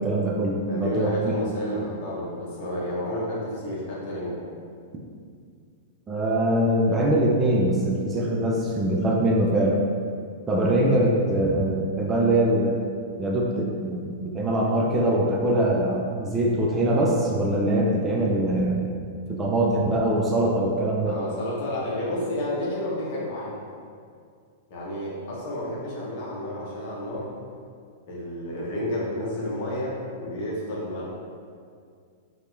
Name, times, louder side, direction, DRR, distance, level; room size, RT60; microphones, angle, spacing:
voice 1, 0.0-1.2 6.1-9.8 10.5-12.8 13.2-18.8 19.3-21.2, right 1 dB, 20° right, -2 dB, 0.3 m, -23 dB
voice 2, 0.7-4.4 21.0-23.5 24.7-27.3 28.1-31.1, left 1 dB, 50° left, -6 dB, 0.7 m, -30 dB
2.8 x 2.0 x 2.2 m, 2.2 s
figure-of-eight pair, 100°, 0 cm